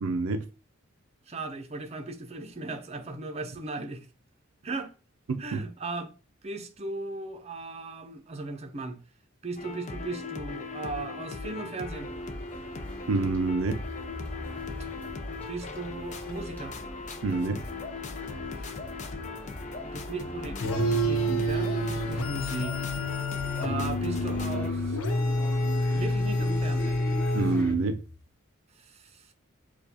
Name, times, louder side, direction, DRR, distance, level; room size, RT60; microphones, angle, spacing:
voice 1, 0.0-0.5 5.3-5.6 13.1-13.8 17.2-17.6 27.3-28.0, right 3 dB, 80° right, 0.4 m, -27 dB
voice 2, 1.3-4.1 4.6-4.9 5.4-6.1 6.4-9.0 9.4-12.1 15.5-16.8 19.9-22.9 23.6-25.0 25.9-27.0 28.7-29.3, right 3 dB, 30° right, 0.6 m, -37 dB
sound 1, 9.6-24.7, left 3 dB, 35° left, 0.5 m, -38 dB
sound 2, 11.8-27.7, right 1 dB, 10° left, 1.2 m, -44 dB
sound 3, 20.6-28.1, left 1 dB, 90° left, 0.6 m, -28 dB
6.5 x 2.3 x 2.8 m
head